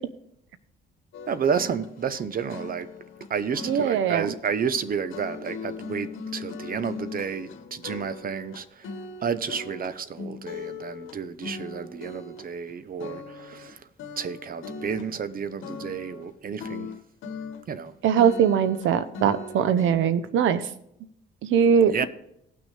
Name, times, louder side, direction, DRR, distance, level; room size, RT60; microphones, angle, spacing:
sound 1, 1.1-12.7 13.0-13.7 14.0-16.3 16.6-17.9 18.2-19.9, left 4 dB, 80° left, 1.2 m, -39 dB
voice 1, 1.3-2.9 3.3-8.9 9.2-13.9 14.2-16.9 17.7-17.9 21.9-22.0, right 6 dB, 45° right, 0.8 m, -31 dB
voice 2, 3.7-4.3 18.0-20.6 21.4-22.0, right 7 dB, 80° right, 0.9 m, -21 dB
19.0 x 6.3 x 3.4 m
cardioid pair, 90°, 20 cm